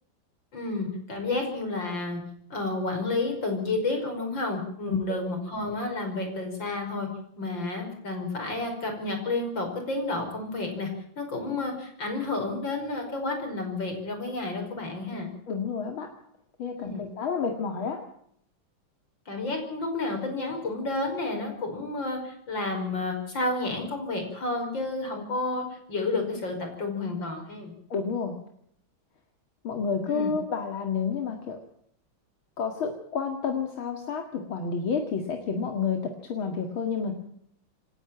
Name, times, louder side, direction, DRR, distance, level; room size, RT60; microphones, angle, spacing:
voice 1, 0.5-2.2 2.5-7.1 7.4-10.9 11.2-15.3 16.8-17.1 19.3-27.7 30.1-30.3, left 2 dB, 65° left, 4 dB, 6.0 m, -31 dB
voice 2, 15.5-16.1 16.6-18.0 27.9-28.3 29.6-31.6 32.6-37.1, left 5 dB, 85° left, 4 dB, 2.9 m, -30 dB
27.5 x 11.5 x 8.9 m, 0.68 s
omnidirectional pair, 2.2 m